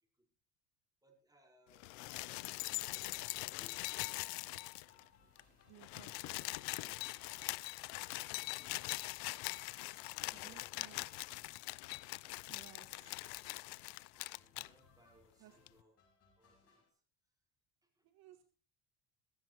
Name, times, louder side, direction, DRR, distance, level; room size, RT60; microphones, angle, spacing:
voice 1, 1.0-2.1 2.4-4.5 6.0-7.1 7.6-9.0 9.8-11.3 14.1-16.0 16.4-16.8 18.3-18.5, right 1 dB, 10° right, 2 dB, 4.9 m, -69 dB
sound 1, 1.7-5.1 5.4-5.5 5.7-14.7 15.7-15.8, left 24 dB, 80° left, 0.6 m, -42 dB
sound 2, 2.1-16.9, left 4 dB, 35° left, 7.0 m, -71 dB
sound 3, 2.1-10.0, right 5 dB, 35° right, 2.8 m, -76 dB
voice 2, 5.7-6.5 10.3-11.0 12.5-13.1 15.4-15.5 18.0-18.5, right 12 dB, 60° right, 7 dB, 1.9 m, -59 dB
16.5 x 15.5 x 3.0 m, 0.35 s
cardioid pair, 115°, 40 cm